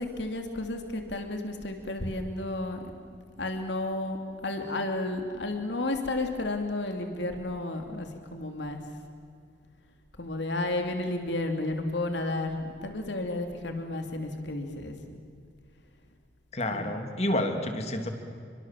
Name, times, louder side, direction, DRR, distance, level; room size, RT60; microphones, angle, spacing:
voice 1, 0.0-2.8 3.4-8.8 10.2-15.2 16.7-16.9, left 2 dB, 75° left, 5 dB, 2.9 m, -32 dB
voice 2, 16.5-18.1, left 1 dB, 35° left, 5 dB, 3.0 m, -29 dB
29.5 x 24.0 x 7.6 m, 2.3 s
head